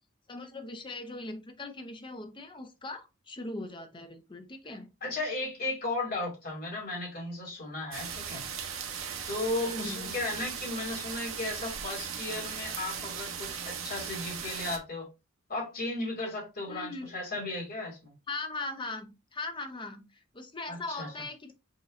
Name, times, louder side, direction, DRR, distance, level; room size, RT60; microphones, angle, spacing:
voice 1, 0.3-4.9 9.6-10.2 16.7-17.1 18.3-21.5, left 2 dB, 25° left, 0.7 m, -40 dB
voice 2, 5.0-8.4 9.3-15.1 15.5-18.1 20.7-21.1, left 2 dB, 50° left, 2.4 m, -35 dB
sound 1, 7.9-14.8, right 7 dB, 75° right, 0.9 m, -38 dB
5.6 x 3.1 x 2.6 m
head